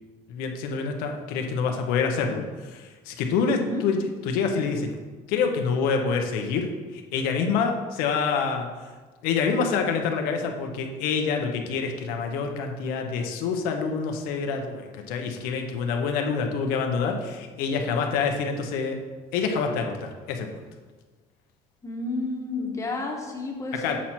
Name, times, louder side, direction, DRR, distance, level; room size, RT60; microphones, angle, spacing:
voice 1, 0.3-4.9 5.3-6.7 6.9-8.7 9.2-19.0 19.3-20.6 23.8-24.0, left 5 dB, 85° left, 4 dB, 0.9 m, -27 dB
voice 2, 3.5-3.8 21.8-24.0, left 2 dB, 20° left, 1 dB, 1.3 m, -31 dB
7.3 x 4.4 x 4.4 m, 1.3 s
cardioid pair, 120°, 15 cm